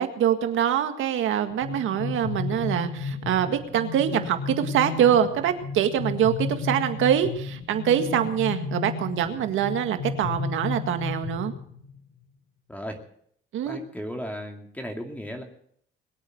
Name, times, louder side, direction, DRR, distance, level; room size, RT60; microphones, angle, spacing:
voice 1, 0.0-11.5 13.5-13.8, right 10 dB, 80° right, 7 dB, 1.9 m, -24 dB
sound 1, 1.5-12.0, left 5 dB, 90° left, 4.9 m, -33 dB
voice 2, 13.6-15.4, equal, 10° left, 3 dB, 2.5 m, -35 dB
21.5 x 8.5 x 7.9 m, 0.66 s
cardioid pair, 90°, 20 cm